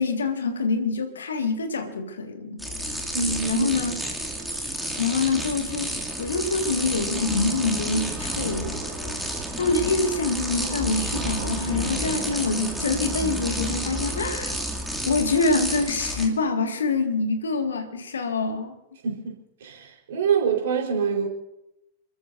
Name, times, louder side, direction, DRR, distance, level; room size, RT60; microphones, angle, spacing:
voice 1, 0.0-2.6 3.5-4.0 5.0-5.9 6.2-8.8 9.6-14.6 15.1-18.7, left 3 dB, 70° left, 1.9 m, -25 dB
sound 1, 2.6-16.3, right 1 dB, ahead, 2.6 m, -30 dB
voice 2, 3.1-3.7 19.0-19.3 19.6-21.3, right 6 dB, 60° right, 4.2 m, -25 dB
29.5 x 13.5 x 2.7 m
figure-of-eight pair, 90°, 0 cm